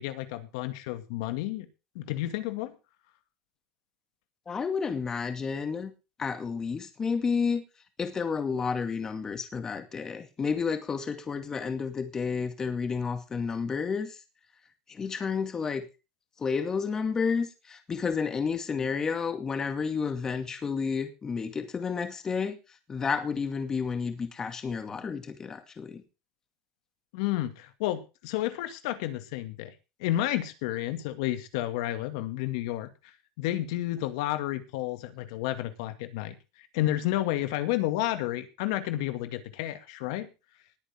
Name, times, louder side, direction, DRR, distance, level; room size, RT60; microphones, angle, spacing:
voice 1, 0.0-1.7 2.0-2.7 27.1-29.7 30.0-32.9 33.4-36.3 36.7-40.3, left 14 dB, 85° left, 9 dB, 2.2 m, -31 dB
voice 2, 4.5-5.9 6.2-7.6 8.0-14.2 14.9-15.8 16.4-22.6 22.9-26.0, left 5 dB, 20° left, 8 dB, 2.3 m, -31 dB
20.0 x 9.0 x 3.7 m, 0.29 s
cardioid pair, 155°, 3 cm